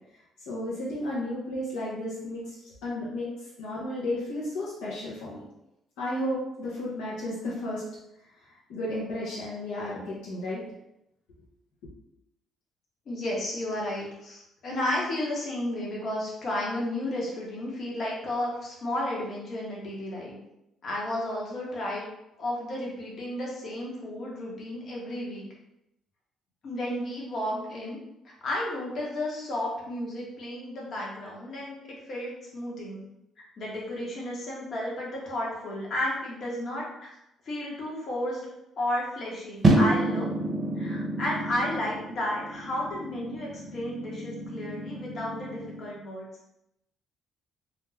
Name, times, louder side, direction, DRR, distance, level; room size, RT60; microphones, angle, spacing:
voice 1, 0.5-3.3 3.6-5.4 6.0-7.8 8.7-10.6, left 1 dB, 85° left, -6 dB, 0.7 m, -33 dB
voice 2, 13.1-20.4 20.8-22.1 22.4-25.5 26.6-28.0 28.2-33.0 33.6-36.9 37.4-38.5 38.8-40.3 40.8-46.3, left 1 dB, 55° left, -4 dB, 1.0 m, -32 dB
sound 1, 39.6-45.9, right 1 dB, 35° right, 0.6 m, -29 dB
2.5 x 2.1 x 3.2 m, 0.85 s
supercardioid pair, 75°, 0 cm